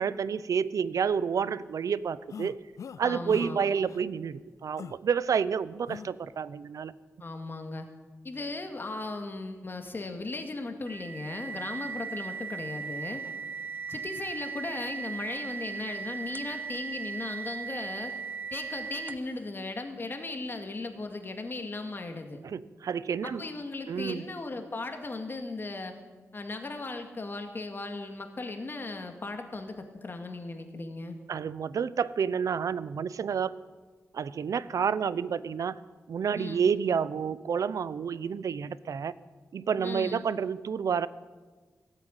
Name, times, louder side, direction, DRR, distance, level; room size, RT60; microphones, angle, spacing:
voice 1, 0.0-2.6 3.0-6.9 22.4-23.4 23.9-24.3 31.3-33.6 34.1-35.8 36.1-39.1 39.5-41.1, right 7 dB, 80° right, 17 dB, 0.6 m, -29 dB
sound 1, 2.3-3.0 3.3-3.5 3.9-4.0 4.8-5.0 5.9-6.1, left 7 dB, 70° left, 0.4 m, -42 dB
voice 2, 3.0-3.6 7.2-7.9 8.2-13.2 13.9-18.1 18.5-22.4 23.2-25.9 26.3-31.2 36.4-36.7 39.8-40.2, left 3 dB, 40° left, 5 dB, 1.9 m, -37 dB
sound 2, 10.9-19.4, right 6 dB, 30° right, 0.7 m, -38 dB
17.5 x 9.1 x 9.0 m, 1.3 s
wide cardioid pair, 100°, 6 cm